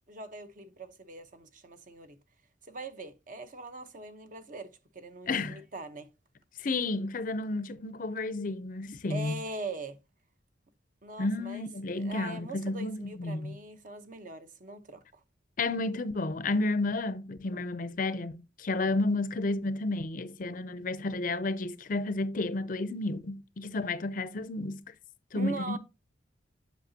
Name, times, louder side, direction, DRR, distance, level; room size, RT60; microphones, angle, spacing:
voice 1, 0.1-2.2 2.7-6.1 9.1-10.0 11.0-11.7 12.0-15.0 25.3-25.8, right 2 dB, 45° right, 0.9 m, -41 dB
voice 2, 5.3-5.6 6.6-9.3 11.2-13.6 15.6-24.8 25.3-25.8, left 2 dB, 45° left, 0.5 m, -31 dB
8.4 x 5.8 x 2.8 m
head